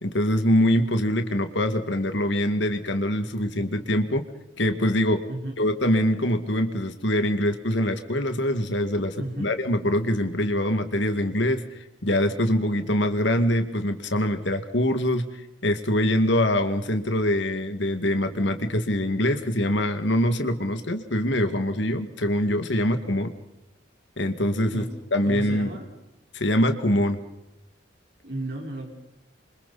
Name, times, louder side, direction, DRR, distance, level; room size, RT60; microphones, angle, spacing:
voice 1, 0.0-4.3 4.6-5.2 5.6-11.6 12.0-15.2 15.6-23.3 24.2-24.8 25.1-25.7 26.3-27.2, left 1 dB, 65° left, 7 dB, 2.2 m, -24 dB
voice 2, 9.2-9.5 24.7-24.9 25.2-25.9 28.2-28.9, right 1 dB, 60° right, 0 dB, 4.8 m, -33 dB
28.5 x 25.5 x 4.3 m, 0.91 s
head